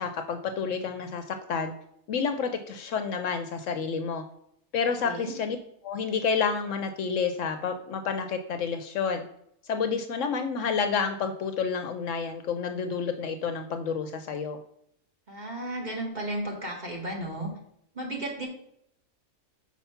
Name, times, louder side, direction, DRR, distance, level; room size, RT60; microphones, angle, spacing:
voice 1, 0.0-1.7 2.1-4.2 4.7-5.6 5.8-9.2 9.7-14.6, left 6 dB, 70° left, 8 dB, 0.9 m, -29 dB
voice 2, 15.3-17.5 17.9-18.5, right 1 dB, 30° right, -1 dB, 1.6 m, -34 dB
5.6 x 4.5 x 5.7 m, 0.74 s
omnidirectional pair, 1.5 m